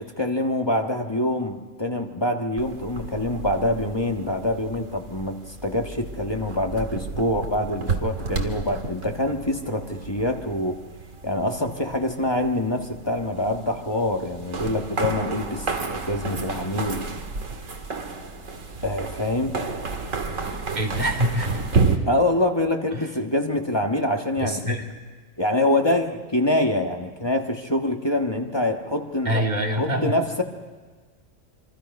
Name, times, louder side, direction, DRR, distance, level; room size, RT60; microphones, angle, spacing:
voice 1, 0.2-10.8 11.2-17.0 18.8-19.6 22.0-24.8 25.4-29.4 29.8-30.4, left 1 dB, 20° left, 3 dB, 1.4 m, -25 dB
sound 1, 2.6-22.0, right 4 dB, 80° right, 2.1 m, -31 dB
voice 2, 20.7-21.6 22.9-23.1 24.4-24.8 29.2-30.1, equal, 35° right, 0 dB, 2.8 m, -25 dB
25.5 x 25.0 x 5.4 m, 1.5 s
omnidirectional pair, 1.4 m